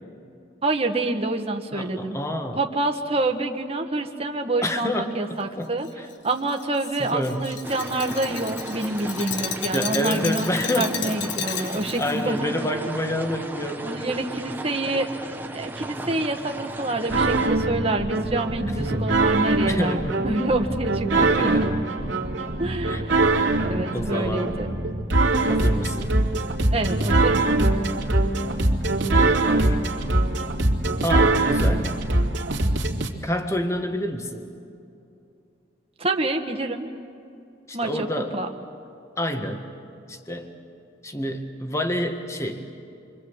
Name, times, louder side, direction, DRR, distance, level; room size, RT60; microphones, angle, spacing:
voice 1, 0.6-2.2 2.6-5.9 6.2-10.5 10.7-12.5 13.8-15.1 15.5-21.7 22.6-23.3 23.6-24.7 26.7-27.4 36.0-36.9 37.7-37.9 38.3-38.5, right 2 dB, 30° right, 3 dB, 1.6 m, -27 dB
voice 2, 1.7-2.6 4.6-5.7 6.0-6.1 7.0-7.6 9.7-14.1 18.8-19.2 19.7-20.2 21.1-21.7 22.9-23.0 23.9-24.6 25.5-26.1 29.2-29.8 31.0-31.9 33.2-34.5 37.7-38.4 39.2-39.7 40.1-40.5 41.0-42.7, equal, 15° left, 5 dB, 1.7 m, -28 dB
Glass, 5.8-12.2, left 7 dB, 75° left, 1.5 m, -33 dB
sound 1, 7.6-17.5, right 1 dB, 10° right, 1.2 m, -36 dB
sound 2, 17.1-33.1, right 2 dB, 80° right, 2.7 m, -22 dB
28.5 x 25.0 x 8.2 m, 2.6 s
head